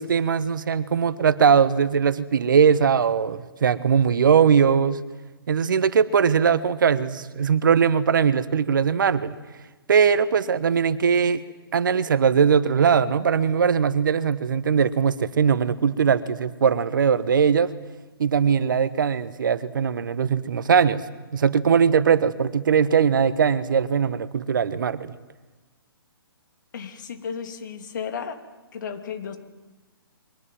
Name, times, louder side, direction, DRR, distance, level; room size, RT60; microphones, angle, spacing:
voice 1, 0.0-5.0 5.5-9.4 9.9-11.4 11.7-17.7 18.2-21.0 21.3-25.1, right 7 dB, 55° right, 14 dB, 1.3 m, -20 dB
voice 2, 26.7-28.4 28.7-29.4, left 7 dB, 50° left, 6 dB, 3.2 m, -33 dB
29.5 x 23.5 x 7.7 m, 1.2 s
figure-of-eight pair, 130°, 13 cm